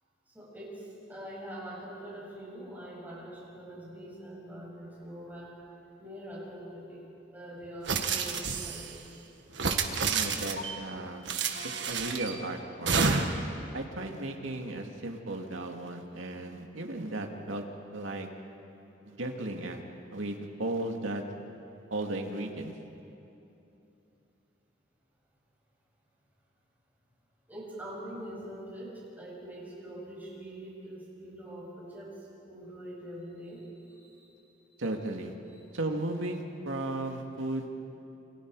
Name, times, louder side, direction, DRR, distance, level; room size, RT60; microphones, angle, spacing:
voice 1, 0.3-5.6 6.0-7.0 7.3-9.0 27.5-32.2 32.4-34.3 35.5-35.6, right 1 dB, 10° right, -6 dB, 7.5 m, -44 dB
sound 1, 7.9-8.9 9.5-10.7 11.3-12.3 12.9-13.5, right 4 dB, 65° right, 1.7 m, -29 dB
voice 2, 10.1-11.3 11.6-13.0 13.7-17.6 17.9-18.3 19.1-19.8 20.1-21.2 21.9-22.7 34.8-35.3 35.7-37.7, right 2 dB, 80° right, 2 dB, 2.3 m, -35 dB
28.0 x 28.0 x 4.9 m, 2.9 s
head